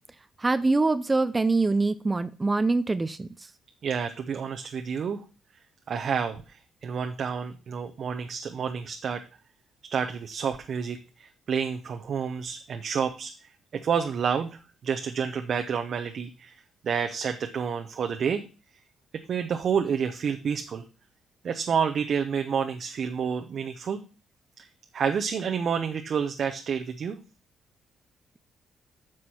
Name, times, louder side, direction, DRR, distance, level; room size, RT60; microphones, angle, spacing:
voice 1, 0.4-3.5, right 3 dB, 20° right, 13 dB, 0.5 m, -24 dB
voice 2, 3.8-5.2 5.9-9.2 9.9-13.3 13.7-16.6 16.8-18.4 19.3-20.8 21.4-24.0 24.6-24.7 24.9-27.2, right 6 dB, 55° right, 6 dB, 0.8 m, -29 dB
9.5 x 6.0 x 4.3 m, 0.33 s
cardioid pair, 90°, 0 cm